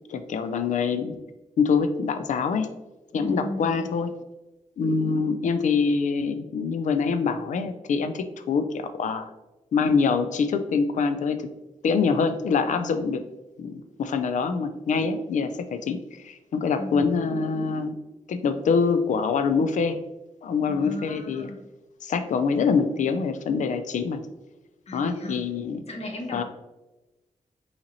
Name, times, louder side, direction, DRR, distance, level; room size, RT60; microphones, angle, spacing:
voice 1, 0.1-1.2 1.6-2.7 3.1-4.1 4.8-9.3 9.7-11.5 11.8-13.2 13.6-18.0 18.3-20.0 20.4-21.5 22.0-24.2 24.9-25.8 26.3-26.4, left 5 dB, 65° left, 9 dB, 0.4 m, -25 dB
voice 2, 3.1-3.9 16.8-17.3 20.7-21.6 24.9-25.4 25.9-26.4, left 1 dB, 50° left, 1 dB, 1.0 m, -35 dB
5.7 x 2.9 x 2.6 m, 1.0 s
wide cardioid pair, 105°, 14 cm